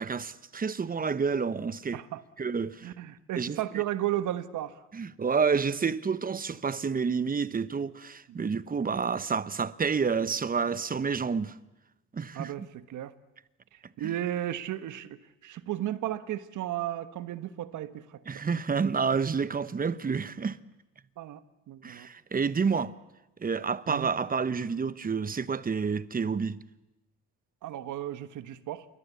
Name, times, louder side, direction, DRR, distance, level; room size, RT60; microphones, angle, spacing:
voice 1, 0.0-2.0 2.4-2.9 3.4-3.8 4.9-11.6 12.1-12.5 14.0-14.1 18.3-20.6 21.8-22.9 23.4-26.6, right 5 dB, 30° right, 1.0 m, -29 dB
voice 2, 2.8-4.8 8.3-8.5 12.3-13.1 13.7-18.5 21.2-21.4 21.7-22.1 23.9-24.1 27.6-28.9, right 13 dB, 80° right, 1.3 m, -34 dB
28.0 x 22.5 x 8.4 m
cardioid pair, 90°, 30 cm